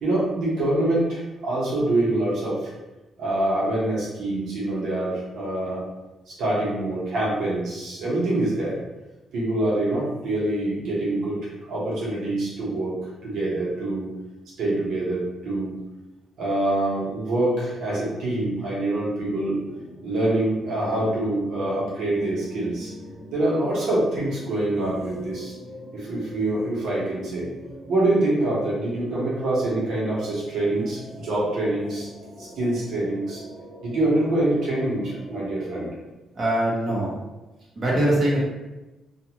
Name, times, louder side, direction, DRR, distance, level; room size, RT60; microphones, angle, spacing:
voice 1, 0.0-2.7 3.2-5.8 6.3-8.8 9.3-13.0 13.2-14.1 14.6-15.7 16.4-19.6 20.0-22.9 23.3-25.5 25.9-27.5 27.9-32.1 32.4-33.4 33.8-35.9, right 1 dB, 75° right, -7 dB, 1.1 m, -25 dB
sound 1, 17.3-35.9, equal, 5° right, 1.2 m, -42 dB
voice 2, 36.3-37.2 37.7-38.4, right 1 dB, 35° right, -5 dB, 0.9 m, -22 dB
2.5 x 2.5 x 3.0 m, 1.1 s
cardioid pair, 90°, 0 cm